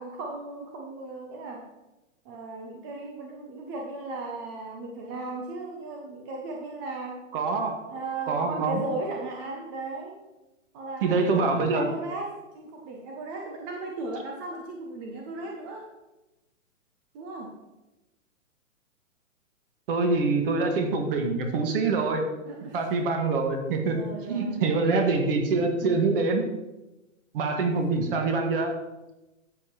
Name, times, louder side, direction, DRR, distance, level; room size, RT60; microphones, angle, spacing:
voice 1, 0.0-1.6 2.2-7.2 7.9-10.2 10.7-15.9 17.1-17.6 22.4-22.8 23.8-25.0 25.8-26.2, right 3 dB, 15° right, 1 dB, 0.6 m, -36 dB
voice 2, 7.3-7.8 8.3-8.8 11.0-11.9 19.9-22.3 22.7-24.0 24.3-26.4 27.3-28.7, right 3 dB, 40° right, 4 dB, 1.8 m, -25 dB
11.5 x 7.2 x 3.0 m, 1.0 s
hypercardioid pair, 145°, 41 cm